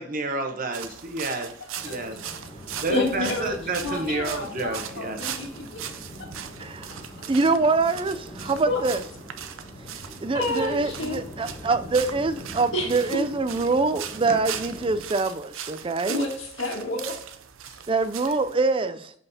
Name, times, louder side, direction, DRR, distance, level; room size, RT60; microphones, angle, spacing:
voice 1, 0.0-1.5 1.8-2.2 2.8-5.2 14.3-14.4, right 2 dB, 45° right, 1.0 m, -30 dB
sound 1, 0.7-18.6, right 9 dB, 75° right, 0.6 m, -39 dB
voice 2, 1.7-2.1 2.9-3.5 3.8-5.8 8.7-8.8 9.9-11.2 12.7-13.3 16.1-17.2, left 2 dB, 65° left, 1.8 m, -30 dB
sound 2, 1.8-15.0, equal, 20° left, 1.2 m, -43 dB
voice 3, 7.3-9.0 10.2-16.2 17.9-19.1, right 3 dB, 25° right, 0.4 m, -24 dB
6.2 x 5.5 x 2.8 m
head